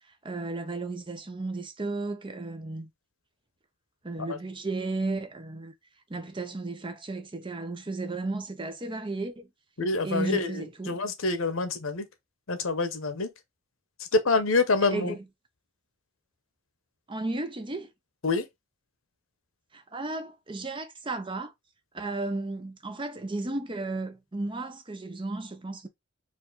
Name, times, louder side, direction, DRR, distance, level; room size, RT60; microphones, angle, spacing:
voice 1, 0.2-2.9 4.0-5.7 6.1-9.5 10.0-11.0 14.9-15.2 17.1-17.9 19.7-21.5 21.9-25.9, right 2 dB, 25° right, 0.7 m, -34 dB
voice 2, 9.8-12.1 12.5-13.3 14.1-15.1 18.2-18.4, left 3 dB, 80° left, 0.9 m, -26 dB
4.6 x 2.5 x 3.9 m
head